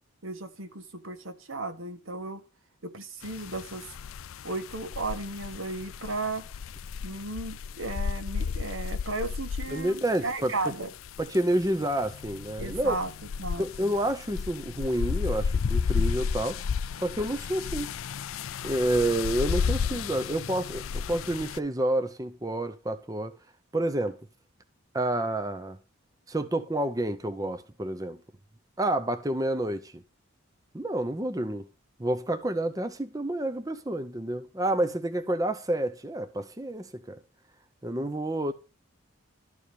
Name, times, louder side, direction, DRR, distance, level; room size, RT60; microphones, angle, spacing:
voice 1, 0.2-2.4 2.8-3.9 4.4-6.4 7.0-10.9 12.6-13.1 13.4-13.9, right 2 dB, 70° right, 1.5 m, -35 dB
sound 1, 3.2-21.6, left 6 dB, 75° left, 0.4 m, -33 dB
voice 2, 9.7-10.5 11.2-13.0 13.6-16.6 17.0-17.9 18.6-23.3 23.7-24.2 24.9-25.8 26.3-28.2 28.8-30.0 30.7-31.7 32.0-37.2 37.8-38.5, right 1 dB, 15° right, 0.6 m, -29 dB
12.5 x 4.9 x 6.8 m
head